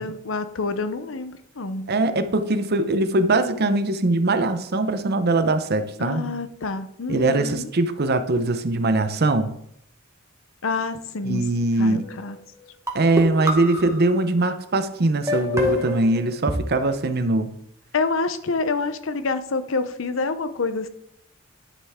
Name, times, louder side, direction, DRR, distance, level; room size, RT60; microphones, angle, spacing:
voice 1, 0.0-1.9 6.0-7.7 10.6-11.5 11.8-12.4 17.9-20.9, left 3 dB, 70° left, 11 dB, 0.7 m, -27 dB
voice 2, 1.9-6.3 7.1-9.5 11.2-12.0 12.9-17.5, right 2 dB, 50° right, 10 dB, 0.8 m, -21 dB
sound 1, 11.9-12.3 12.9-14.3 15.3-16.6, left 1 dB, 15° right, 1.5 m, -27 dB
11.0 x 6.6 x 3.6 m, 0.74 s
head